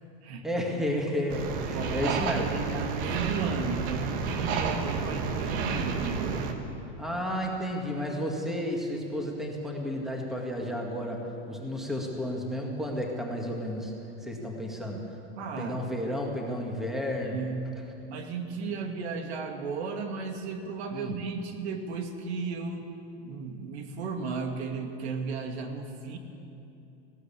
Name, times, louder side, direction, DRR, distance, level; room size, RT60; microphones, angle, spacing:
voice 1, 0.4-2.5 7.0-13.9 14.2-15.0 15.6-17.4 20.9-21.1, equal, ahead, 0 dB, 1.9 m, -32 dB
sound 1, 1.3-6.5, right 5 dB, 55° right, 2.0 m, -30 dB
voice 2, 1.7-6.4 15.4-15.9 17.3-17.7 18.1-22.9 23.2-26.2, right 4 dB, 80° right, 4 dB, 2.6 m, -34 dB
19.5 x 16.0 x 8.5 m, 2.8 s
supercardioid pair, 165°, 32 cm